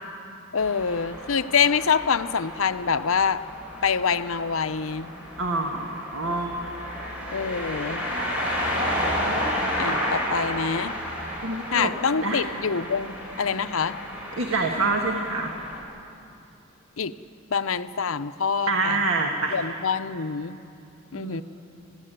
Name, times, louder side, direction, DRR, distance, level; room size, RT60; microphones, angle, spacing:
voice 1, 0.5-3.4 3.8-5.1 7.3-8.1 9.8-10.9 11.7-14.0 17.0-17.1 17.5-19.0 19.5-20.6 21.1-21.4, left 6 dB, 75° left, 11 dB, 0.7 m, -25 dB
sound 1, 0.6-15.8, equal, 5° right, 5.8 m, -32 dB
voice 2, 5.4-6.7 8.4-8.5 9.0-9.4 11.4-11.9 12.2-12.4 14.4-15.5 18.7-19.6 21.1-21.4, right 3 dB, 70° right, 2 dB, 1.7 m, -27 dB
30.0 x 13.5 x 9.2 m, 2.7 s
head